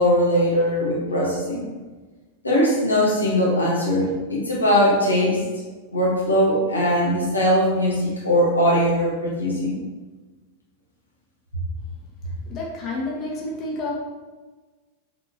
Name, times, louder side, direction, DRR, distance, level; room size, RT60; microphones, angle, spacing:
voice 1, 0.0-1.7 2.4-5.4 5.9-9.8, equal, 80° left, -5 dB, 1.6 m, -20 dB
voice 2, 12.5-13.9, left 2 dB, 35° left, -4 dB, 1.6 m, -29 dB
7.5 x 4.4 x 3.1 m, 1.3 s
figure-of-eight pair, 90°, 0 cm